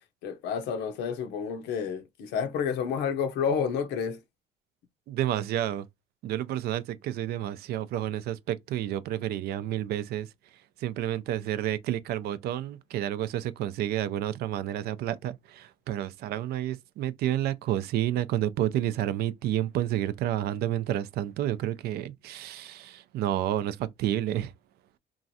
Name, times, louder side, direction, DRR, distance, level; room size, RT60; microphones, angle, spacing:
voice 1, 0.2-4.2, left 7 dB, 85° left, 0.7 m, -30 dB
voice 2, 5.1-5.9 6.2-10.3 10.8-24.5, right 12 dB, 70° right, 0.4 m, -30 dB
3.0 x 2.4 x 2.6 m
cardioid pair, 110°, 17 cm